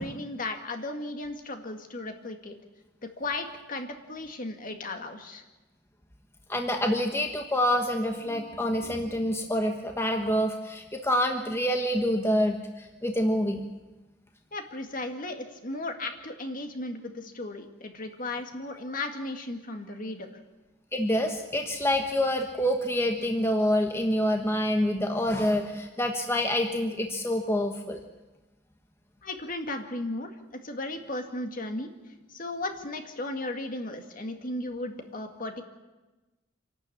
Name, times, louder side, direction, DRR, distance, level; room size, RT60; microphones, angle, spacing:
voice 1, 0.0-2.6 3.0-5.4 14.5-20.4 29.2-31.9 32.3-35.6, left 2 dB, 45° left, 5 dB, 2.0 m, -35 dB
voice 2, 6.5-13.6 20.9-28.0, equal, 15° left, 4 dB, 1.2 m, -27 dB
26.0 x 12.0 x 8.6 m, 1.1 s
head